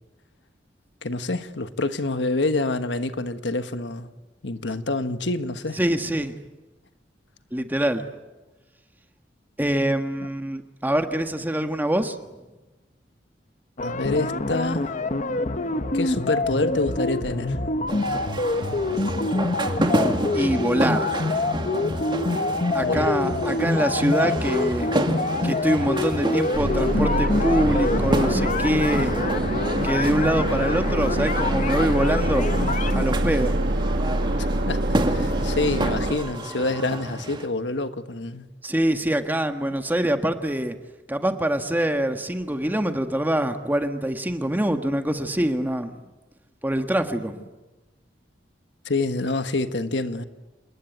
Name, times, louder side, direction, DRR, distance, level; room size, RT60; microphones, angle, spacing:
voice 1, 1.0-4.1 4.4-5.8 13.8-14.9 15.9-17.6 22.8-23.1 29.0-29.1 34.4-38.5 48.8-50.2, left 2 dB, 75° left, 1.4 m, -27 dB
voice 2, 5.8-6.3 7.5-8.0 9.6-12.1 20.3-21.1 22.7-24.9 25.4-29.1 29.8-32.6 32.9-33.5 38.6-40.7 41.1-46.0 46.6-47.4, right 1 dB, 10° right, 1.6 m, -24 dB
sound 1, 13.8-33.0, left 2 dB, 45° left, 1.1 m, -26 dB
sound 2, 17.9-37.5, right 1 dB, 25° right, 2.2 m, -30 dB
sound 3, 26.5-36.1, right 1 dB, 60° right, 1.6 m, -25 dB
28.5 x 20.0 x 9.2 m
head